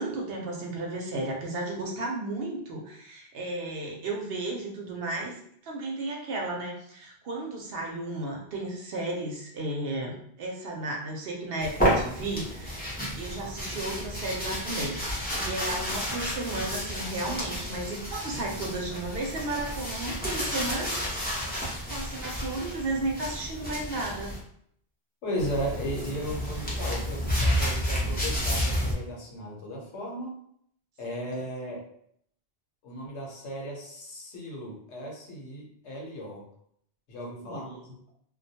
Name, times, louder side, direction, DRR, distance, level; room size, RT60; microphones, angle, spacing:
voice 1, 0.0-5.4 5.6-12.8 13.2-21.3 21.9-24.3 37.4-37.8, right 2 dB, 65° right, -1 dB, 0.8 m, -34 dB
sound 1, 11.6-24.4 25.4-28.9, equal, 10° left, 0.5 m, -31 dB
voice 2, 25.2-30.3 31.0-31.8 32.8-36.4 37.1-37.7, equal, 85° left, -1 dB, 1.1 m, -36 dB
2.3 x 2.2 x 2.7 m, 0.68 s
omnidirectional pair, 1.1 m